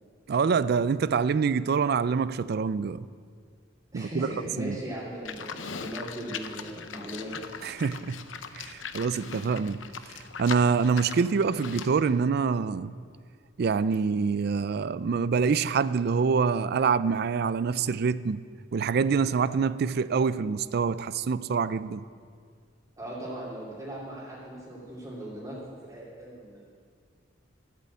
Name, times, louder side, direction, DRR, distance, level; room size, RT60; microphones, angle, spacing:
voice 1, 0.3-3.0 3.9-4.3 4.6-4.8 7.6-8.2 8.5-12.9 13.6-18.4 18.7-22.0, right 5 dB, 55° right, 0.4 m, -26 dB
voice 2, 3.9-7.4 23.0-26.6, right 1 dB, 20° right, 2.6 m, -38 dB
Livestock farm animals working animals, 5.2-12.0, left 6 dB, 85° left, 0.8 m, -40 dB
14.0 x 8.3 x 8.5 m
head